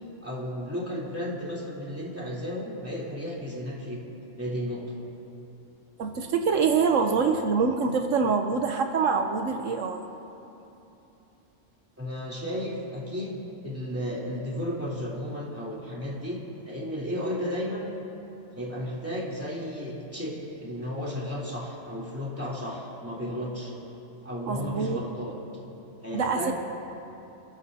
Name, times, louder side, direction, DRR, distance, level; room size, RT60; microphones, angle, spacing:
voice 1, 0.2-4.0 4.4-4.9 6.2-6.5 12.0-16.4 16.7-17.9 18.5-23.7 24.2-25.4 26.0-26.5, equal, 10° right, -5 dB, 3.3 m, -33 dB
voice 2, 6.0-10.1 24.5-25.0 26.1-26.5, right 5 dB, 80° right, 5 dB, 1.2 m, -25 dB
28.5 x 15.0 x 2.8 m, 2.8 s
omnidirectional pair, 1.3 m